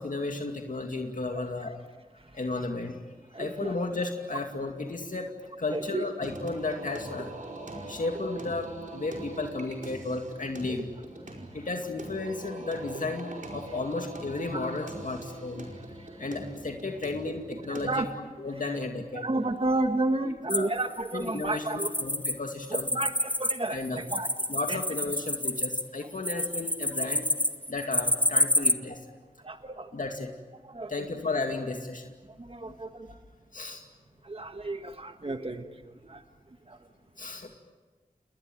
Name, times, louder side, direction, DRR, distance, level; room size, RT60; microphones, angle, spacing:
voice 1, 0.0-1.8 2.3-3.0 3.4-5.3 5.6-7.4 7.9-10.9 11.5-15.7 16.2-18.1 18.4-19.3 20.2-20.7 21.1-22.9 23.7-24.0 24.5-27.3 27.7-29.0 29.9-30.3 30.9-32.1 32.6-32.7 33.5-33.8 37.2-37.5, left 3 dB, 65° left, 3 dB, 2.5 m, -33 dB
voice 2, 3.3-3.7 5.7-6.0 14.5-14.7 17.7-18.1 19.1-21.9 22.9-24.3 24.7-24.8 29.4-29.9 30.7-30.9 32.5-32.9 34.3-35.6 36.1-36.2, right 2 dB, 40° right, 6 dB, 1.6 m, -31 dB
Singing, 6.2-17.9, right 2 dB, 65° right, 5.0 m, -42 dB
sound 1, 20.5-22.3 22.6-28.7, left 1 dB, 10° left, 1.4 m, -28 dB
29.5 x 20.0 x 9.2 m, 1.4 s
cardioid pair, 45°, 14 cm